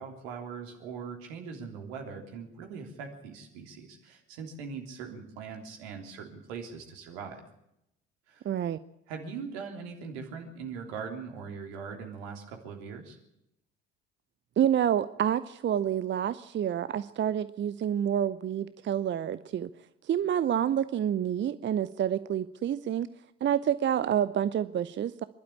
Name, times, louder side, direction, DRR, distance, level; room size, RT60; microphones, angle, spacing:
voice 1, 0.0-7.4 8.3-8.5 9.1-13.2, right 5 dB, 70° right, 4 dB, 3.4 m, -41 dB
voice 2, 8.4-8.8 14.6-19.7 20.0-23.1 23.4-25.2, right 9 dB, 35° right, 15 dB, 0.7 m, -28 dB
26.5 x 12.0 x 8.6 m, 0.83 s
figure-of-eight pair, 55°, 33 cm